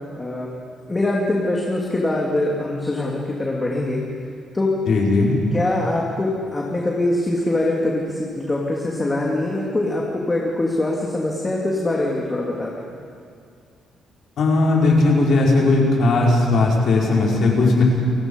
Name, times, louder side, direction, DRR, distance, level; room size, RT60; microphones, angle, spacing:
voice 1, 0.2-0.5 0.9-4.0 4.5-4.7 5.5-12.7, left 2 dB, 20° left, -2 dB, 2.9 m, -23 dB
voice 2, 4.9-5.4 14.4-17.8, left 3 dB, 65° left, -3 dB, 5.4 m, -17 dB
29.0 x 17.5 x 5.6 m, 2.3 s
cardioid pair, 90°, 0 cm